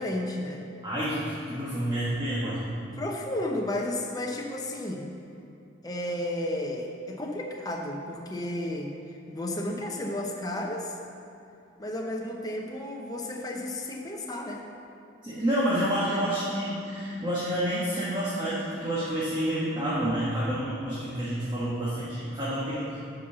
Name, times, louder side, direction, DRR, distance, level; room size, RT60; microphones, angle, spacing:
voice 1, 0.0-0.7 3.0-5.1 5.8-11.0 11.8-14.6, left 1 dB, 20° left, 0 dB, 0.7 m, -33 dB
voice 2, 0.8-2.6 15.2-23.0, right 1 dB, 25° right, -9 dB, 1.4 m, -29 dB
8.3 x 5.5 x 6.8 m, 2.6 s
head